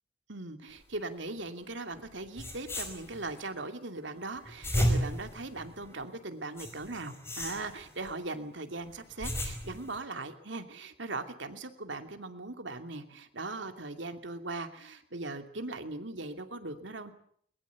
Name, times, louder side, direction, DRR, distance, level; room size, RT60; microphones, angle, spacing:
voice 1, 0.3-17.1, right 2 dB, 85° right, 7 dB, 2.7 m, -39 dB
sound 1, 2.1-2.2 2.4-3.4 4.4-6.0 6.6-8.1 8.9-10.0, equal, 15° left, 5.1 m, -33 dB
22.0 x 21.0 x 8.4 m, 0.64 s
head